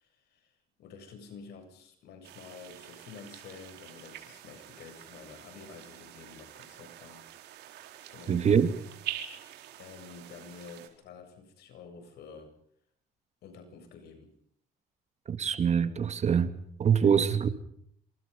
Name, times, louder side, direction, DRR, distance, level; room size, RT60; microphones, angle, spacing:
voice 1, 0.0-7.3 8.1-8.4 9.8-12.5 13.4-14.3 17.0-17.1, left 5 dB, 75° left, 7.9 m, -49 dB
sound 1, 2.2-10.9, right 12 dB, 80° right, 4.5 m, -45 dB
voice 2, 8.3-8.7 15.3-16.5 16.8-17.5, right 7 dB, 40° right, 2.5 m, -24 dB
27.5 x 27.0 x 5.5 m
cardioid pair, 110°, 17 cm